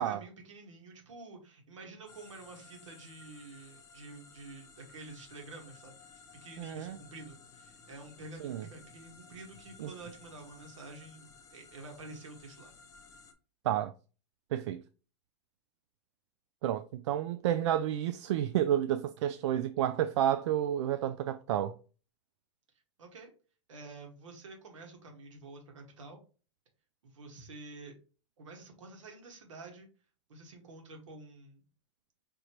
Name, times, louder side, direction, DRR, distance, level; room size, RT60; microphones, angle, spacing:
voice 1, 0.0-12.7 23.0-23.3 23.7-26.2 27.0-27.9 28.4-29.9 30.3-31.6, right 3 dB, 90° right, 1.7 m, -49 dB
sound 1, 2.1-13.3, left 4 dB, 20° left, 0.7 m, -56 dB
voice 2, 6.6-7.0 8.4-8.6 9.8-9.9 13.6-13.9 14.5-14.8 16.6-21.8, right 11 dB, 70° right, 0.4 m, -30 dB
5.0 x 3.0 x 3.0 m
supercardioid pair, 135°, 15 cm